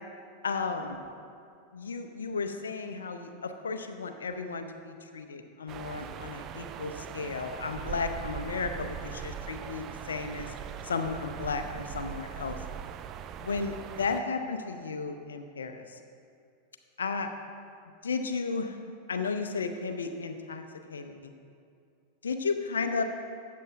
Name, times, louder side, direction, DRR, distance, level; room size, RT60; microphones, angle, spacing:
voice 1, 0.4-1.0 1.7-10.5 10.8-12.6 13.4-16.0 17.0-17.3 18.0-18.8 19.1-20.6 20.9-21.3 22.2-23.0, left 4 dB, 70° left, 7 dB, 0.6 m, -34 dB
sound 1, 5.7-14.2, right 9 dB, 35° right, 0.4 m, -40 dB
13.0 x 8.4 x 2.6 m, 2.4 s
figure-of-eight pair, 90°, 0 cm